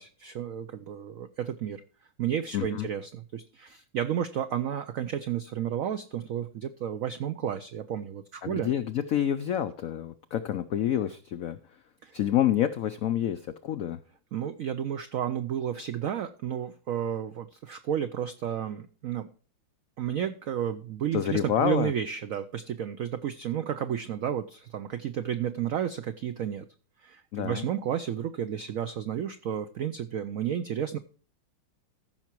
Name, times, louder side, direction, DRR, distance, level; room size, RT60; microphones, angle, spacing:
voice 1, 0.0-1.8 2.2-8.7 12.0-12.1 14.3-19.3 20.0-26.6 27.0-31.0, right 9 dB, 90° right, 11 dB, 0.7 m, -32 dB
voice 2, 2.5-2.9 8.4-11.6 12.1-14.0 21.1-21.9 27.3-27.7, left 10 dB, 90° left, 11 dB, 0.7 m, -28 dB
14.5 x 5.8 x 4.5 m, 0.40 s
omnidirectional pair, 2.2 m